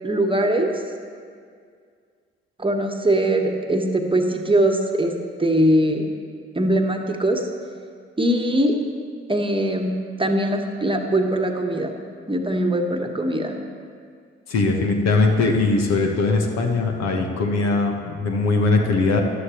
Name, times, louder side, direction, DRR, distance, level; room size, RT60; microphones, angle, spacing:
voice 1, 0.0-0.7 2.6-5.1 5.4-6.1 6.5-7.4 8.2-8.8 9.3-11.9 12.3-13.6, right 1 dB, 15° right, 3 dB, 1.3 m, -21 dB
voice 2, 14.5-19.2, left 3 dB, 60° left, 2 dB, 1.4 m, -20 dB
14.5 x 11.5 x 3.1 m, 2.1 s
figure-of-eight pair, 40°, 30 cm